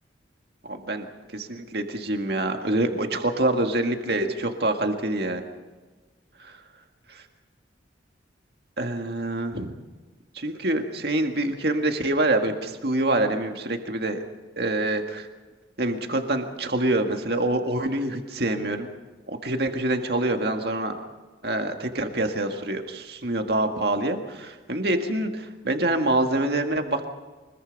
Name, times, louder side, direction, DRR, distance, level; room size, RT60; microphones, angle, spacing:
voice 1, 0.6-1.1 1.3-5.4 6.4-6.6 8.8-9.8 10.4-14.2 14.6-15.3 15.8-18.9 19.3-21.1 21.4-27.1, right 1 dB, 60° right, 5 dB, 1.9 m, -26 dB
24.5 x 22.0 x 5.3 m, 1.3 s
head